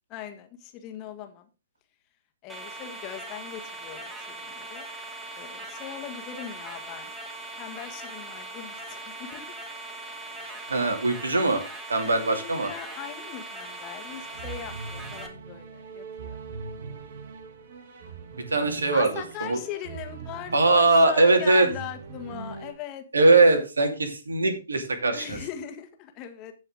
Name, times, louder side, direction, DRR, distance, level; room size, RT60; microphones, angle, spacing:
voice 1, 0.1-1.5 2.4-4.8 5.3-7.1 7.6-9.6 12.1-16.4 18.9-23.1 25.1-26.5, left 10 dB, 30° left, 7 dB, 1.9 m, -40 dB
sound 1, 2.5-15.3, right 2 dB, 10° right, 2.8 m, -40 dB
voice 2, 10.4-11.6 11.9-12.7 18.5-19.6 20.5-21.7 23.1-25.4, right 2 dB, 80° right, 6 dB, 2.6 m, -21 dB
sound 2, 14.1-22.7, right 5 dB, 55° right, 2.2 m, -42 dB
16.0 x 5.5 x 3.7 m, 0.30 s
figure-of-eight pair, 125°, 0 cm